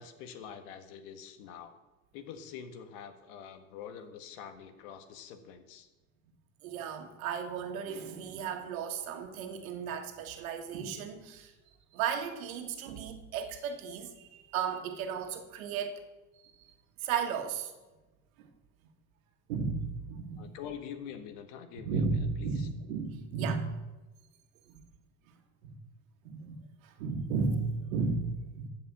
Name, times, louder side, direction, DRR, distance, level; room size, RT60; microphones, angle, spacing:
voice 1, 0.0-1.7 2.1-5.9 20.4-22.0 22.4-22.7, left 8 dB, 80° left, 8 dB, 1.7 m, -45 dB
voice 2, 6.6-11.5 11.9-16.0 16.4-16.8 17.0-17.7 18.4-18.5 19.5-20.5 21.8-23.8 24.7-24.9 25.3-25.4 25.6-25.8 26.2-28.7, right 5 dB, 90° right, 5 dB, 1.8 m, -34 dB
14.0 x 5.7 x 8.6 m, 1.1 s
supercardioid pair, 95°, 40 cm